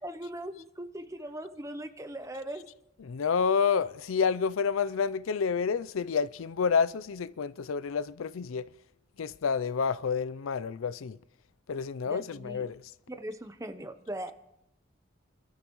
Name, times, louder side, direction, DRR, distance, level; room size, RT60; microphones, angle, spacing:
voice 1, 0.0-2.7 12.0-12.7 13.2-14.3, right 1 dB, 15° right, 0.8 m, -39 dB
voice 2, 3.0-8.7 9.2-11.2 11.7-12.8, left 6 dB, 85° left, 0.5 m, -29 dB
29.0 x 13.0 x 3.1 m
head